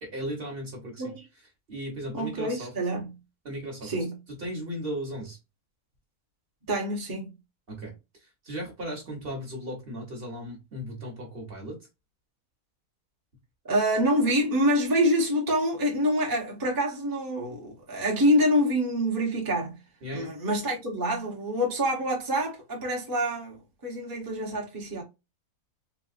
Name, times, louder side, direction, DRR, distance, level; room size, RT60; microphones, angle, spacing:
voice 1, 0.0-1.1 1.7-2.7 3.4-3.9 4.4-5.4 7.7-7.9 8.4-11.8 20.0-20.3, equal, 45° right, 1.2 m, -36 dB
voice 2, 2.1-3.1 3.8-4.2 6.7-7.3 13.6-19.8 20.1-25.0, equal, 15° right, 0.8 m, -26 dB
3.9 x 2.4 x 2.4 m
omnidirectional pair, 1.6 m